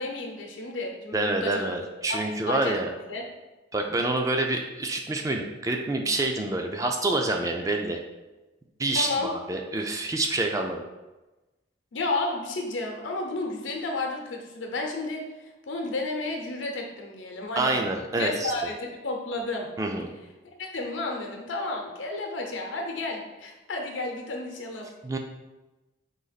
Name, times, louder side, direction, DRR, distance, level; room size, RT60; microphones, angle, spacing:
voice 1, 0.0-2.2 2.5-2.7 3.1-3.2 8.9-9.3 11.9-15.2 15.7-17.8 18.1-19.7 20.6-24.9, left 2 dB, 90° left, 2 dB, 0.8 m, -32 dB
voice 2, 1.1-2.9 3.7-8.0 8.8-10.8 17.6-18.5 19.8-20.1 25.0-25.2, right 2 dB, 15° right, 3 dB, 0.3 m, -27 dB
3.9 x 2.9 x 4.0 m, 1.1 s
head